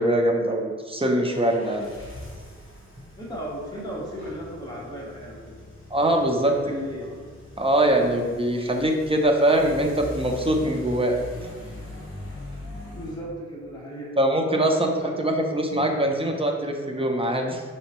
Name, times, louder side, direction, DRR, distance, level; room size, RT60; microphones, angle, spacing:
voice 1, 0.0-1.9 5.9-6.6 7.6-11.2 14.2-17.6, right 1 dB, 20° right, 2 dB, 0.6 m, -22 dB
sound 1, 1.3-13.2, left 1 dB, 45° left, 1.2 m, -41 dB
voice 2, 3.2-5.6 6.4-7.2 13.0-14.1 15.0-15.2, equal, 15° left, -4 dB, 1.0 m, -35 dB
5.2 x 3.1 x 2.9 m, 1.5 s
wide cardioid pair, 80°, 29 cm